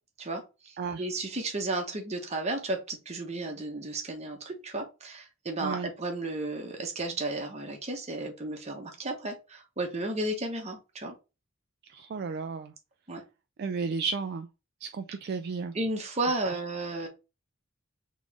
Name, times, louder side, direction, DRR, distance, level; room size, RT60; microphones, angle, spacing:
voice 1, 1.0-11.1 13.1-13.2 15.7-17.1, right 2 dB, 30° right, 1.0 m, -33 dB
voice 2, 5.6-5.9 11.9-12.7 13.6-14.5 14.8-15.7 16.4-16.6, right 5 dB, 50° right, 0.3 m, -33 dB
4.1 x 3.1 x 3.5 m
head